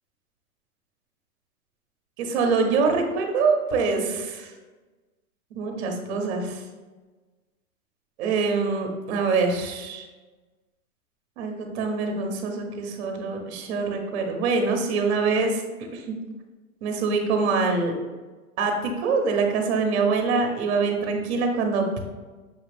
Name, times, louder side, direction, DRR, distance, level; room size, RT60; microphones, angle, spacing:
voice 1, 2.2-4.5 5.5-6.6 8.2-10.1 11.4-15.6 15.9-16.0 16.8-17.9 18.6-22.0, right 4 dB, 50° right, 4 dB, 0.9 m, -24 dB
5.8 x 2.4 x 3.3 m, 1.3 s
hypercardioid pair, 145°, 43 cm